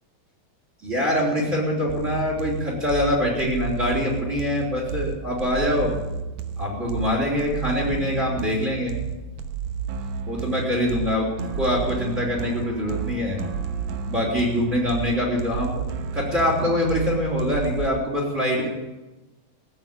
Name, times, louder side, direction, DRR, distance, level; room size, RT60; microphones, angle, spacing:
voice 1, 0.8-6.0 6.6-8.9 10.3-11.3 11.6-13.4 14.0-15.8 16.1-18.7, left 1 dB, 25° right, -2 dB, 4.3 m, -24 dB
sound 1, 1.9-17.9, right 6 dB, 80° right, 2.5 m, -31 dB
17.5 x 8.2 x 8.8 m, 1.1 s
omnidirectional pair, 3.5 m